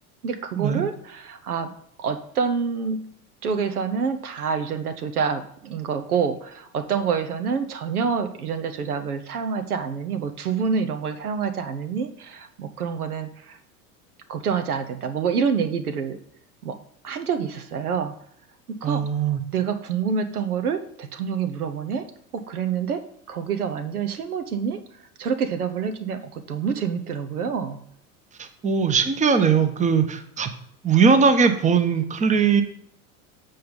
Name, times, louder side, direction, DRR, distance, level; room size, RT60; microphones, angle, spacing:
voice 1, 0.2-1.7 2.0-3.1 3.4-13.6 14.3-16.2 16.6-16.8 17.0-18.2 18.7-19.0 19.5-22.1 22.3-24.8 25.2-27.8, right 6 dB, 85° right, 9 dB, 0.9 m, -27 dB
voice 2, 18.8-19.4 28.4-30.5 30.8-32.6, right 5 dB, 15° right, 9 dB, 0.9 m, -20 dB
7.8 x 5.3 x 5.2 m, 0.66 s
hypercardioid pair, 80°, 44 cm